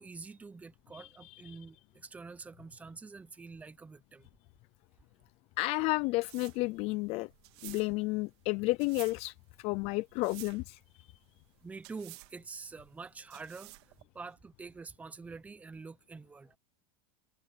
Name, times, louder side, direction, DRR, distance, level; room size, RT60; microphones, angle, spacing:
voice 1, 0.0-4.3 11.6-16.6, right 4 dB, 10° right, 0.9 m, -47 dB
voice 2, 0.9-1.6 5.6-7.3 7.6-11.1, left 22 dB, 40° left, 0.5 m, -32 dB
sound 1, 5.6-14.0, right 22 dB, 60° right, 2.4 m, -52 dB
supercardioid pair, 155°, 15 cm